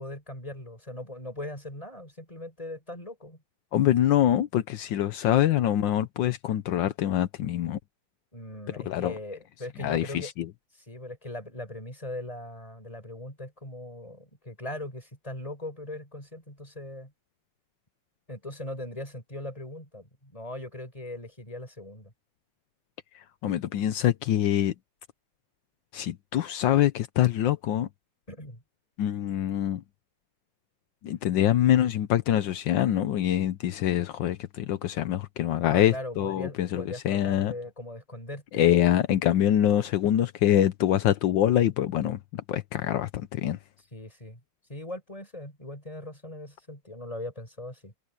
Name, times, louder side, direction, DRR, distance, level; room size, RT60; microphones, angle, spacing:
voice 1, 0.0-3.4 8.3-10.3 10.7-17.1 18.3-22.1 23.4-23.5 28.3-28.6 35.6-38.7 43.9-44.4 44.7-47.9, left 1 dB, 20° left, 5.5 m, -40 dB
voice 2, 3.7-7.8 8.9-9.1 9.8-10.0 23.4-24.7 25.9-27.9 29.0-29.8 31.0-37.5 38.5-43.1 43.4-43.6, left 11 dB, 80° left, 1.5 m, -24 dB
omnidirectional pair, 2.0 m